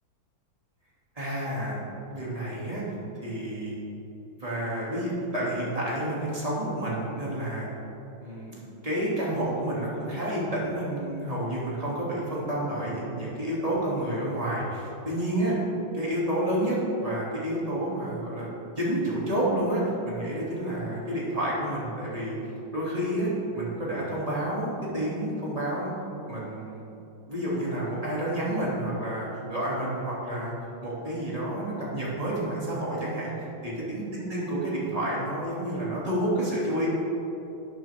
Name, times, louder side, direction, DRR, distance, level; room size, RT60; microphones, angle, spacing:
voice 1, 1.1-1.8 2.1-2.8 3.2-3.7 4.4-7.7 8.2-15.5 15.9-18.5 18.8-22.3 22.7-25.9 26.3-26.8 27.3-30.5 30.8-33.3 33.6-36.9, right 1 dB, 20° right, -7 dB, 2.6 m, -29 dB
12.5 x 8.6 x 3.6 m, 3.0 s
omnidirectional pair, 2.0 m